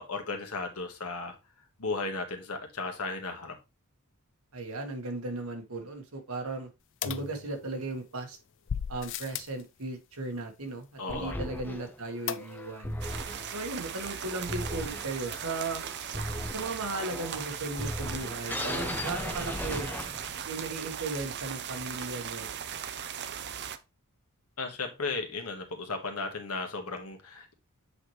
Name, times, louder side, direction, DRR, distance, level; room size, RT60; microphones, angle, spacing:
voice 1, 0.0-1.3 1.8-3.5 11.0-11.4 24.6-27.6, left 3 dB, 85° left, 4 dB, 1.5 m, -35 dB
voice 2, 4.5-6.7 7.0-8.4 8.9-13.0 13.5-15.8 16.4-19.9 20.5-22.5, right 2 dB, 70° right, 4 dB, 1.6 m, -36 dB
sound 1, 7.0-8.0 8.7-9.6 12.3-12.9 13.2-13.3 13.5-13.6, left 8 dB, 60° left, 0.4 m, -36 dB
sound 2, 11.1-20.5, left 1 dB, 10° left, 0.7 m, -38 dB
sound 3, 13.0-23.8, right 8 dB, 50° right, 0.6 m, -38 dB
7.7 x 4.5 x 3.2 m, 0.26 s
head